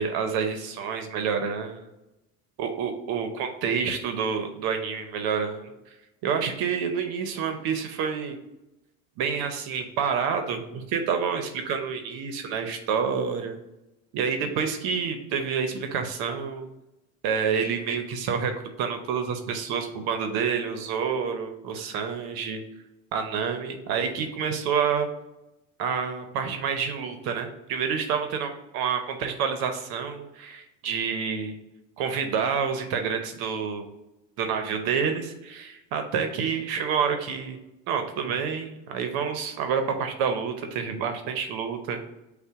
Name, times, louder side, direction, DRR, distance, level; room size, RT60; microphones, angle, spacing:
voice 1, 0.0-1.8 2.6-5.7 6.2-8.4 9.2-13.6 14.1-16.7 17.2-18.5 18.8-22.6 23.1-25.1 25.8-31.5 32.0-33.9 34.4-37.6 37.9-42.0, right 6 dB, 60° right, 6 dB, 0.7 m, -28 dB
5.4 x 2.2 x 4.5 m, 0.94 s
supercardioid pair, 100°, 42 cm